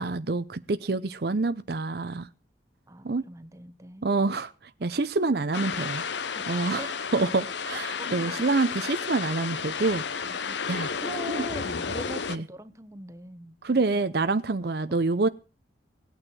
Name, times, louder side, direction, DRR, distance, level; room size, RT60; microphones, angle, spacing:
voice 1, 0.0-2.3 3.0-3.2 4.0-4.5 4.8-6.0 6.5-6.8 7.1-10.4 10.7-10.9 11.3-11.4 12.3-12.4 13.6-15.3, right 3 dB, 55° right, 12 dB, 0.6 m, -27 dB
voice 2, 2.9-4.1 4.8-4.9 6.3-7.2 8.0-8.1 10.2-10.6 11.0-13.6 13.9-14.7, right 1 dB, 15° right, 11 dB, 0.9 m, -42 dB
Stormy weather and strong wind, 5.5-12.4, left 6 dB, 70° left, 0.8 m, -32 dB
17.5 x 9.0 x 6.1 m, 0.35 s
head